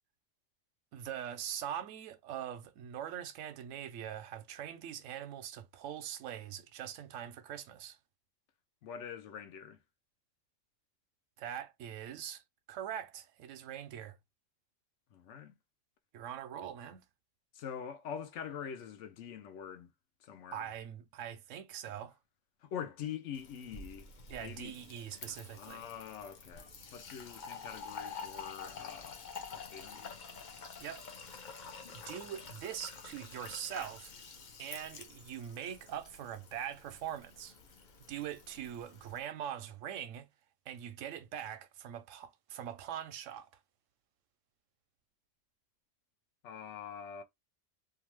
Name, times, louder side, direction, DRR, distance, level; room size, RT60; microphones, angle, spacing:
voice 1, 0.9-8.0 11.4-12.4 12.7-14.2 16.1-17.0 20.5-22.1 24.3-25.9 30.8-31.0 31.5-34.1 34.6-37.6 38.1-40.3 40.7-43.5, right 10 dB, 90° right, 0.9 m, -42 dB
voice 2, 8.8-9.8 15.1-15.5 17.5-19.9 20.2-20.6 22.6-24.1 24.4-24.8 25.3-29.2 29.5-30.2 46.4-47.2, left 8 dB, 80° left, 0.9 m, -44 dB
Fill (with liquid), 23.3-39.2, left 5 dB, 50° left, 0.6 m, -49 dB
2.6 x 2.4 x 2.9 m
omnidirectional pair, 1.3 m